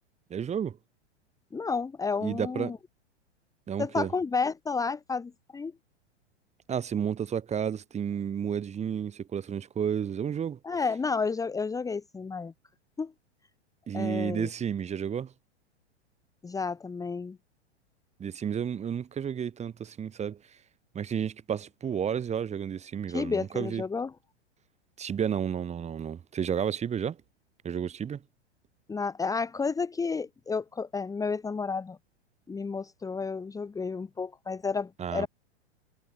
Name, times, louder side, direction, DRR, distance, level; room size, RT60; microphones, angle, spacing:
voice 1, 0.3-0.8 2.2-2.8 3.7-4.1 6.7-10.6 13.9-15.3 18.2-20.4 20.9-23.8 25.0-27.2 27.6-28.2 35.0-35.3, right 8 dB, 20° right, 3.1 m, -31 dB
voice 2, 1.5-2.8 3.8-5.7 10.6-12.5 13.0-13.1 13.9-14.5 16.4-17.4 23.1-24.1 28.9-32.0 32.5-35.3, left 4 dB, 10° left, 1.6 m, -31 dB
figure-of-eight pair, 105°, 34 cm